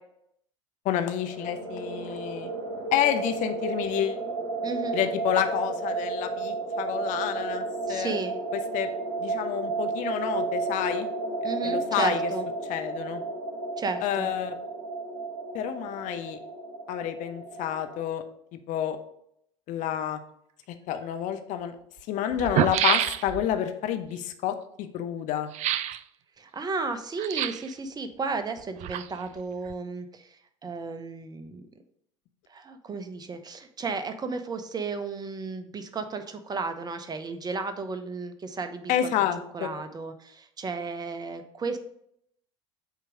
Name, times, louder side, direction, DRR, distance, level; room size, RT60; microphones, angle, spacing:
voice 1, 0.8-2.5 2.9-4.2 4.9-8.1 8.7-8.9 9.2-11.1 11.6-12.2 12.7-13.2 14.0-14.5 15.5-16.4 16.9-18.2 18.5-19.0 19.7-20.2 20.9-21.7 22.1-25.5 38.9-39.7, left 10 dB, 55° left, 7 dB, 0.8 m, -29 dB
sound 1, 1.2-18.1, right 3 dB, 75° right, 1.7 m, -33 dB
voice 2, 4.6-5.0 7.9-8.4 11.4-12.5 13.8-14.3 26.4-31.6 32.5-39.1 39.5-41.8, right 4 dB, 25° right, 9 dB, 0.9 m, -33 dB
sound 2, 21.0-21.1 22.0-22.1 22.3-23.6 25.5-26.0 27.2-27.7 28.6-29.4 29.7-29.8, right 11 dB, 50° right, 0.4 m, -27 dB
8.2 x 3.0 x 5.0 m, 0.73 s
hypercardioid pair, 80°, 15 cm